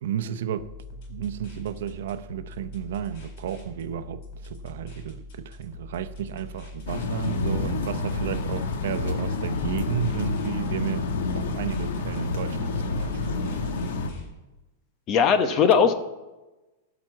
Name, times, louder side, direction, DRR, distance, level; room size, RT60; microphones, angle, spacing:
voice 1, 0.0-11.1 11.3-13.4 15.4-15.9, right 9 dB, 75° right, 0.8 m, -33 dB
sound 1, 0.6-14.3, left 2 dB, 55° left, 4.3 m, -43 dB
sound 2, 6.9-14.1, left 3 dB, 80° left, 1.8 m, -28 dB
voice 2, 15.1-15.9, left 7 dB, 30° left, 1.1 m, -19 dB
15.5 x 6.0 x 7.4 m
supercardioid pair, 150°, 0 cm